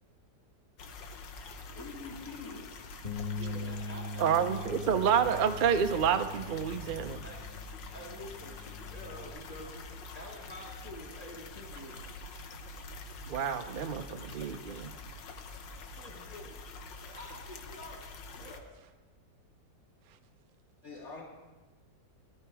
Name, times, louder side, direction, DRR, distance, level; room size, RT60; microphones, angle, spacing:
sound 1, 0.8-18.6, left 3 dB, 80° left, 1.7 m, -46 dB
voice 1, 1.7-2.7 20.8-21.2, left 4 dB, 50° left, -4 dB, 3.3 m, -44 dB
Bass guitar, 3.0-9.3, left 2 dB, 25° left, 1.3 m, -41 dB
voice 2, 3.3-5.1 7.2-7.5 7.9-9.9 10.1-12.1 15.4-16.6 17.0-18.1 18.3-18.7, equal, 20° right, -2 dB, 2.2 m, -48 dB
voice 3, 4.2-7.2 13.3-14.9, right 7 dB, 75° right, 7 dB, 0.4 m, -29 dB
17.5 x 12.0 x 4.8 m, 1.2 s
omnidirectional pair, 1.9 m